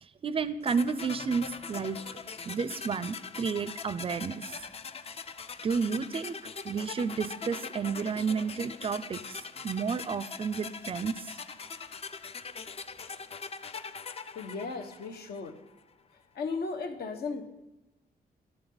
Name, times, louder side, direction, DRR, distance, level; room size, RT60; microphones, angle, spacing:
voice 1, 0.0-2.0 2.5-4.7 5.6-6.4 6.6-11.4, right 5 dB, 35° right, 14 dB, 0.4 m, -31 dB
sound 1, 0.7-15.6, left 5 dB, 35° left, 0.5 m, -42 dB
voice 2, 14.3-15.5 16.3-17.4, left 4 dB, 70° left, 6 dB, 1.4 m, -35 dB
12.5 x 11.5 x 4.0 m, 1.0 s
wide cardioid pair, 165°, 17 cm